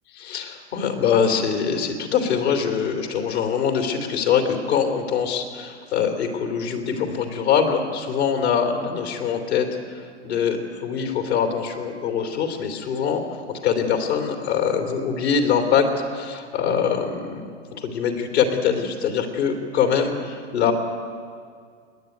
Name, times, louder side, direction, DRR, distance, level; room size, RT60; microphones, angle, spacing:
voice 1, 0.2-20.7, left 7 dB, 70° left, 4 dB, 2.9 m, -23 dB
28.5 x 10.5 x 9.2 m, 2.1 s
hypercardioid pair, 105°, 34 cm